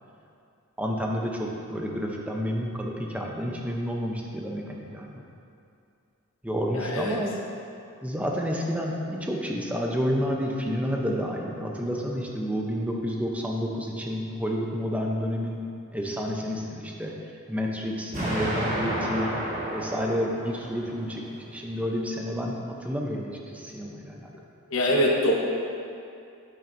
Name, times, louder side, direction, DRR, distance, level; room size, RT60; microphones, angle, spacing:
voice 1, 0.8-5.2 6.4-7.4 8.0-15.6 15.9-17.1 17.5-19.3 19.7-24.3, equal, 5° right, -1 dB, 0.6 m, -30 dB
voice 2, 6.7-7.2 24.7-25.3, equal, 65° left, -1 dB, 1.1 m, -23 dB
Explosion, 18.1-21.1, right 1 dB, 35° right, 1.5 m, -31 dB
8.7 x 8.6 x 2.6 m, 2.5 s
head